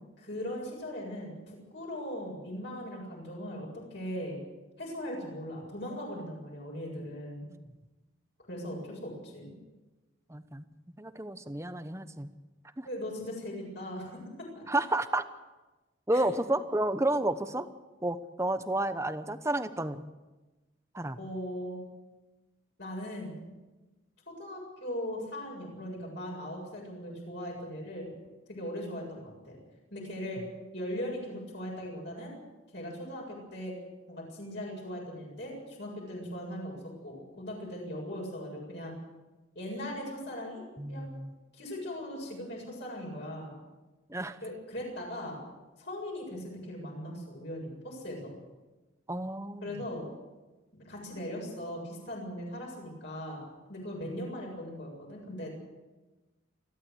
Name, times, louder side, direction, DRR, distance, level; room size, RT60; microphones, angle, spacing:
voice 1, 0.2-4.4 4.8-7.5 8.5-9.5 12.8-14.6 16.1-16.4 21.2-21.8 22.8-23.4 24.3-28.1 28.5-29.6 29.9-30.4 30.7-32.3 32.7-33.8 34.1-38.9 39.5-40.6 40.9-41.1 41.5-43.6 44.4-45.4 45.8-48.3 49.6-50.1 50.8-53.4 53.7-55.5, equal, 55° left, -2 dB, 7.7 m, -39 dB
voice 2, 10.3-10.6 11.0-12.3 12.8-12.9 14.7-15.2 16.1-17.7 18.0-20.0 20.9-21.2 40.8-41.3 44.1-44.4 49.1-49.8, right 1 dB, 15° right, 11 dB, 0.9 m, -31 dB
29.5 x 12.5 x 8.2 m, 1.1 s
head